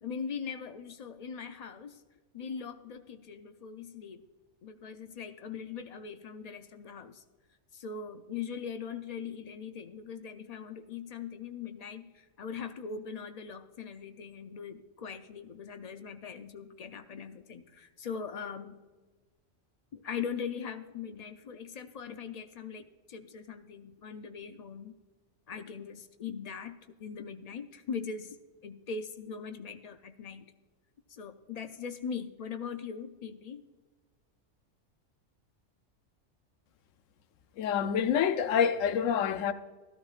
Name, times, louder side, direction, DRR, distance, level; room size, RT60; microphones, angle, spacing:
voice 1, 0.0-2.0 2.3-4.2 4.6-7.2 7.7-18.8 19.9-24.9 25.5-28.4 28.6-30.5 31.1-33.6, left 6 dB, 65° left, 0.4 m, -41 dB
voice 2, 37.6-39.5, left 8 dB, 85° left, 1.0 m, -27 dB
13.5 x 13.5 x 2.4 m
omnidirectional pair, 1.3 m